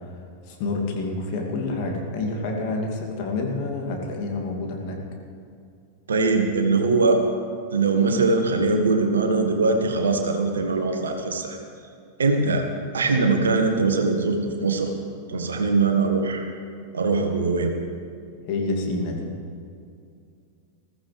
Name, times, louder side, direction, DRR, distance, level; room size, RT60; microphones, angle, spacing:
voice 1, 0.5-5.0 18.4-19.3, left 2 dB, 45° left, 0 dB, 2.6 m, -28 dB
voice 2, 6.1-7.2 7.7-11.6 12.2-12.6 12.9-14.9 15.3-16.5 16.9-17.7, right 3 dB, 70° right, 4 dB, 1.6 m, -21 dB
21.0 x 15.0 x 3.4 m, 2.4 s
figure-of-eight pair, 90°, 0 cm